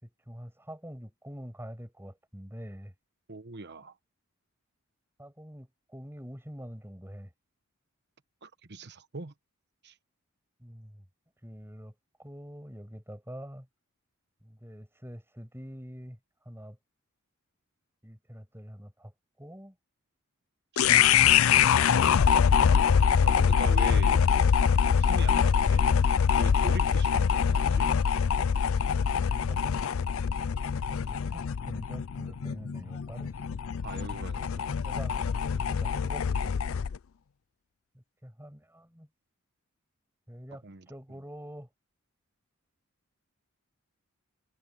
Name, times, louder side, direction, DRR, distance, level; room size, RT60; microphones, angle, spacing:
voice 1, 0.0-2.9 5.2-7.3 10.6-11.0 11.4-13.7 14.4-16.2 16.4-16.8 18.0-19.8 21.3-21.9 24.3-24.7 29.0-29.6 31.1-33.3 34.3-34.5 34.8-36.6 37.9-39.1 40.3-41.7, equal, 10° right, 6.8 m, -45 dB
voice 2, 3.3-4.0 8.4-9.3 9.8-9.9 20.8-20.9 21.2-21.8 23.2-24.2 24.9-25.9 26.4-27.9 33.8-34.8 40.6-40.9, right 3 dB, 50° right, 1.2 m, -41 dB
sound 1, 20.8-37.0, left 7 dB, 70° left, 0.4 m, -24 dB
head